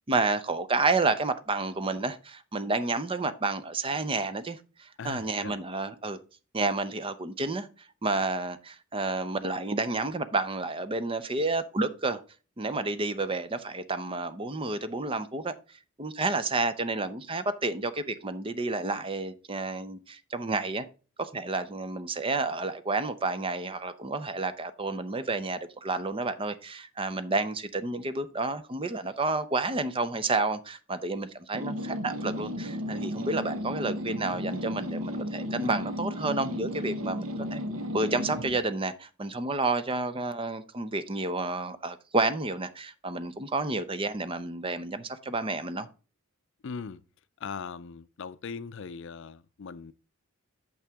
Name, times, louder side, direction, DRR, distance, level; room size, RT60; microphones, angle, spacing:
voice 1, 0.1-6.2 6.5-7.7 8.0-12.2 12.6-15.5 16.0-20.9 21.2-37.6 37.9-45.9, right 3 dB, 25° right, 0.6 m, -30 dB
voice 2, 5.0-5.6 46.6-47.0 47.4-49.9, left 5 dB, 60° left, 0.5 m, -39 dB
sound 1, 31.5-38.6, left 1 dB, 80° right, 1.1 m, -34 dB
8.5 x 6.1 x 3.5 m
head